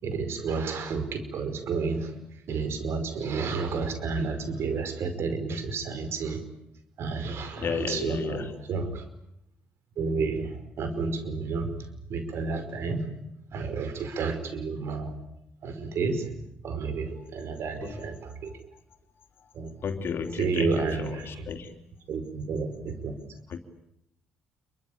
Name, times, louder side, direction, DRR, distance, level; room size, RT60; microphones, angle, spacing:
voice 1, 0.0-2.1 2.5-6.4 7.0-9.0 10.0-11.7 12.1-13.1 13.5-15.1 15.6-16.3 16.6-18.6 19.5-19.7 20.4-21.4 22.1-23.1, right 4 dB, 60° right, 9 dB, 5.1 m, -31 dB
voice 2, 7.6-8.5 17.8-18.6 19.4-19.5 19.8-21.8 23.5-23.6, left 6 dB, 55° left, 7 dB, 3.4 m, -34 dB
28.0 x 23.5 x 8.7 m, 0.82 s
hypercardioid pair, 55°, 5 cm